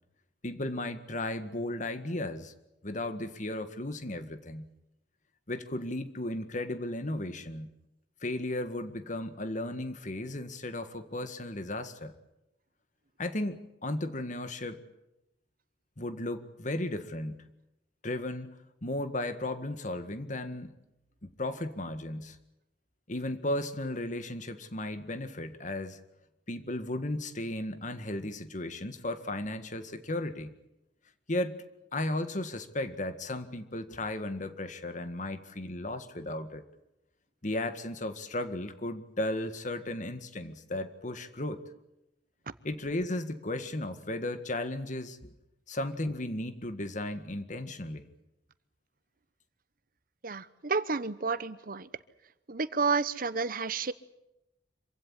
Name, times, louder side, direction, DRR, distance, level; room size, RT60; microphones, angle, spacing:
voice 1, 0.4-2.5 2.8-4.7 5.5-7.7 8.2-12.1 13.2-14.8 16.0-17.5 18.0-18.6 18.8-20.7 21.2-22.4 23.1-26.0 26.5-30.5 31.3-31.6 31.9-36.6 37.4-41.6 42.6-45.3 45.7-48.1, left 1 dB, 45° left, 10 dB, 1.8 m, -35 dB
voice 2, 50.2-51.9 52.5-53.9, right 4 dB, 55° right, 15 dB, 1.0 m, -30 dB
26.5 x 16.0 x 9.8 m, 0.90 s
head